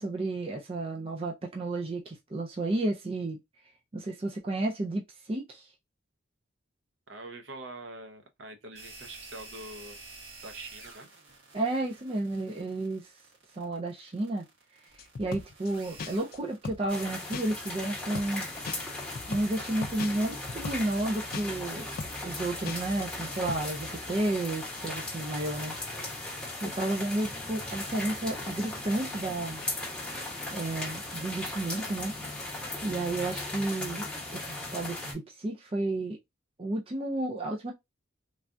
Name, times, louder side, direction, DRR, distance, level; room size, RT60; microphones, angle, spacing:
voice 1, 0.0-3.4 3.9-5.7 11.5-13.1 13.6-14.5 14.9-18.5 19.3-21.9 22.2-25.7 26.6-29.6 30.5-32.1 32.8-36.2 36.6-37.7, right 2 dB, 30° right, 0.4 m, -32 dB
voice 2, 7.1-10.0 10.4-11.1 26.7-27.1, right 2 dB, 65° right, 0.8 m, -44 dB
sound 1, 8.7-20.0, right 3 dB, 85° right, 1.5 m, -51 dB
sound 2, 15.0-15.7 16.0-16.4 16.6-17.0 17.3-17.7 18.0-18.4 18.6-21.0 21.3-21.7 22.0-22.4 22.6-23.0 23.3-23.6, left 4 dB, 45° left, 0.3 m, -38 dB
sound 3, 16.9-35.1, left 2 dB, 5° left, 0.9 m, -37 dB
3.2 x 2.3 x 2.5 m
head